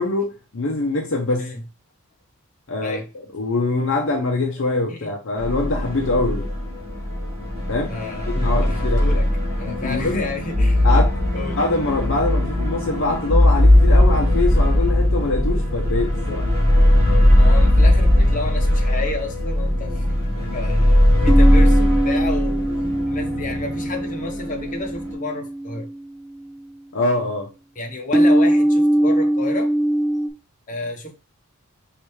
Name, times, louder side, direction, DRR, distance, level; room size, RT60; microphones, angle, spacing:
voice 1, 0.0-1.5 2.7-3.0 3.3-6.4 7.7-7.9 8.3-9.1 9.8-10.2 10.8-11.1 11.6-16.5 26.9-27.5, left 2 dB, 55° left, 2 dB, 0.7 m, -23 dB
sound 1, 5.4-25.1, left 1 dB, 30° right, 1.7 m, -18 dB
voice 2, 7.8-9.3 9.6-10.9 11.3-11.6 17.4-22.7 23.1-25.9 27.7-29.7 30.7-31.1, left 2 dB, 35° left, 1 dB, 1.1 m, -31 dB
sound 2, 19.8-19.9 21.3-26.7 28.1-30.3, right 1 dB, 5° right, 0.6 m, -21 dB
5.0 x 3.2 x 3.2 m, 0.31 s
head